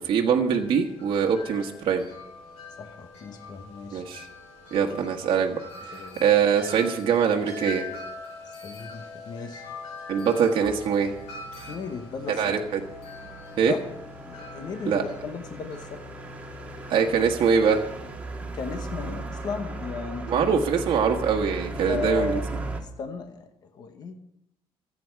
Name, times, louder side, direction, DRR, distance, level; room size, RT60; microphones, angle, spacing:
voice 1, 0.0-2.0 3.9-4.3 4.7-5.6 5.9-7.9 10.1-11.1 11.6-11.7 12.3-12.8 13.6-13.7 14.8-15.0 16.9-17.8 20.3-22.4, right 7 dB, 50° right, 1 dB, 1.5 m, -23 dB
Wind chime, 0.5-18.4, left 3 dB, 75° left, 6.7 m, -43 dB
voice 2, 2.8-4.0 5.9-6.2 8.6-9.6 11.7-12.5 13.7-13.8 14.2-16.0 18.6-20.5 21.9-22.4 22.8-23.5 23.7-24.1, left 5 dB, 40° left, 6 dB, 1.3 m, -35 dB
sound 1, 10.6-22.8, right 2 dB, 15° right, 1.8 m, -37 dB
24.5 x 8.7 x 4.7 m, 0.81 s
cardioid pair, 170°, 11 cm